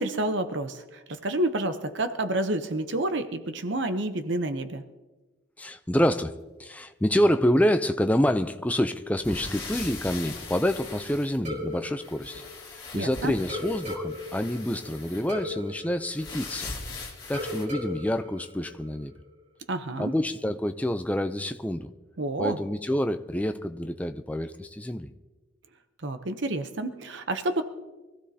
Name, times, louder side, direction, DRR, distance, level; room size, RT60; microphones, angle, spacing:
voice 1, 0.0-4.8 12.9-13.3 19.7-20.1 22.2-22.6 26.0-27.6, right 2 dB, 65° right, 9 dB, 0.8 m, -29 dB
voice 2, 5.6-12.4 12.7-16.7 17.3-19.1 20.0-21.9 22.4-25.1, equal, 5° left, 8 dB, 0.4 m, -27 dB
sound 1, 9.2-11.7 12.0-15.3 16.1-17.6, left 3 dB, 25° left, 2.9 m, -40 dB
sound 2, 11.5-13.0 13.5-16.9 17.3-19.3, left 2 dB, 35° right, 4.0 m, -37 dB
24.0 x 15.5 x 2.8 m, 1.2 s
head